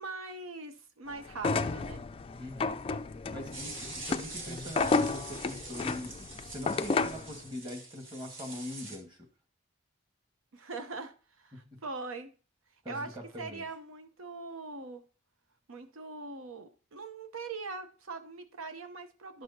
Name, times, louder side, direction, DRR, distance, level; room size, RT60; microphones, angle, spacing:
voice 1, 0.0-2.0 10.5-12.3 12.9-15.0 15.7-19.4, right 3 dB, 85° right, 9 dB, 0.8 m, -42 dB
sound 1, 1.3-7.3, left 3 dB, 25° left, 0.3 m, -32 dB
voice 2, 2.4-2.8 3.3-9.3 11.5-11.8 12.8-13.6, left 1 dB, 20° right, 4 dB, 1.4 m, -43 dB
sound 2, 3.5-9.0, right 2 dB, 65° right, 1.8 m, -45 dB
11.5 x 6.2 x 2.8 m, 0.37 s
head